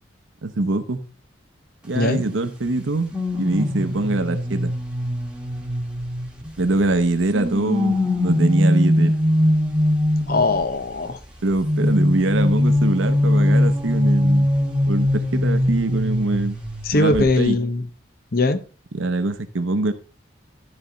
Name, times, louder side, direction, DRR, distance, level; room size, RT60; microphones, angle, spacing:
voice 1, 0.4-1.0 1.8-4.7 6.6-9.1 11.4-14.5 14.9-16.6 16.9-17.6 18.9-19.9, right 2 dB, 85° right, 9 dB, 0.8 m, -23 dB
sound 1, 3.1-6.7 7.3-10.6 11.6-16.8 17.1-17.4, left 1 dB, 5° right, 1.3 m, -21 dB
voice 2, 10.3-11.2 16.9-17.9 18.3-18.6, left 2 dB, 50° left, 10 dB, 0.7 m, -20 dB
12.5 x 4.4 x 4.0 m, 0.38 s
head